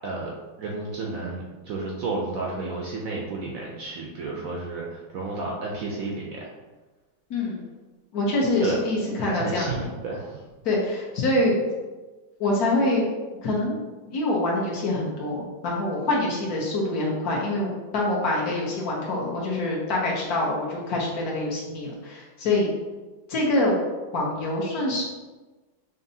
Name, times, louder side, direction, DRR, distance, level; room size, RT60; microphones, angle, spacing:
voice 1, 0.6-6.5 8.6-8.8 9.2-10.4, right 3 dB, 75° right, -2 dB, 0.8 m, -31 dB
voice 2, 7.3-7.6 8.1-9.9 10.6-11.6 12.4-13.1 13.4-13.8 14.1-22.7 23.3-23.8 24.1-25.0, left 2 dB, 60° left, -3 dB, 1.2 m, -25 dB
5.3 x 2.6 x 2.6 m, 1.2 s
omnidirectional pair, 2.0 m